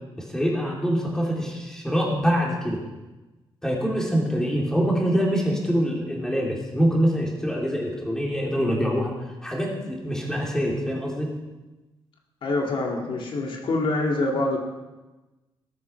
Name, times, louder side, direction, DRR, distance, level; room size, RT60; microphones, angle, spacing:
voice 1, 0.2-2.8 3.6-9.1 9.4-11.3, equal, 5° left, -3 dB, 3.6 m, -24 dB
voice 2, 12.4-14.6, left 2 dB, 60° left, 0 dB, 2.6 m, -25 dB
20.0 x 13.0 x 4.7 m, 1.1 s
wide cardioid pair, 145°, 10 cm